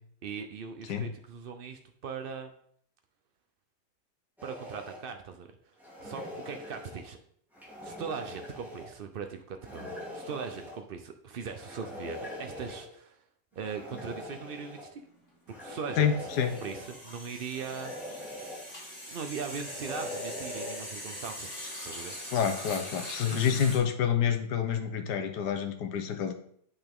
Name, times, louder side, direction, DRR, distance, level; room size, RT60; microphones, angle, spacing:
voice 1, 0.2-2.5 4.4-5.5 6.0-7.2 7.8-13.2 13.6-15.0 15.5-17.9 19.1-21.5 21.8-22.1 23.2-23.4, right 6 dB, 90° right, 6 dB, 0.5 m, -40 dB
sound 1, 4.4-5.0 5.8-7.0 7.5-8.9 9.6-10.8 11.5-12.9 13.6-14.9 15.5-17.0 17.5-18.6 19.3-20.9, left 1 dB, ahead, 2.9 m, -42 dB
sound 2, 15.0-15.2 15.5-23.8, left 1 dB, 30° left, 3.0 m, -42 dB
voice 2, 16.0-16.6 22.3-26.3, left 8 dB, 85° left, 7 dB, 1.4 m, -28 dB
8.1 x 5.6 x 3.6 m, 0.64 s
omnidirectional pair, 1.7 m